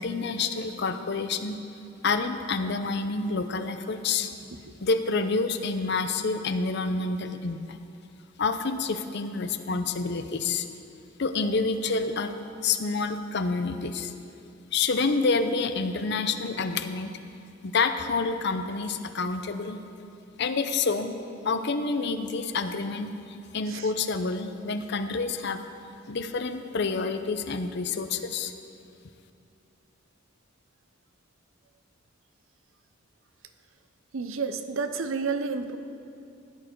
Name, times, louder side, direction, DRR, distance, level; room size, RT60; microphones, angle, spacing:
voice 1, 0.0-1.6 2.0-4.3 4.8-7.8 8.4-10.6 11.2-12.3 12.6-14.1 14.7-17.1 17.6-19.8 20.4-21.2 21.4-25.6 26.1-28.5, left 4 dB, 55° left, 9 dB, 0.7 m, -28 dB
voice 2, 34.1-35.8, right 4 dB, 80° right, 9 dB, 0.7 m, -30 dB
15.0 x 10.0 x 4.5 m, 2.6 s
head